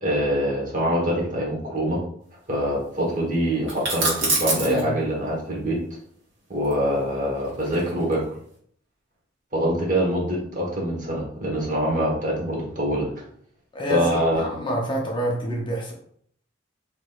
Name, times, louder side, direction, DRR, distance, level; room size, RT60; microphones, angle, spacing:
voice 1, 0.0-2.0 2.5-5.8 6.5-8.2 9.5-13.1 13.9-14.5, equal, 40° right, -3 dB, 1.0 m, -24 dB
sound 1, 3.7-4.8 6.6-8.2, right 2 dB, 75° right, 1.3 m, -26 dB
voice 2, 13.7-15.9, equal, 25° left, -1 dB, 0.5 m, -27 dB
3.4 x 3.0 x 2.3 m, 0.64 s
head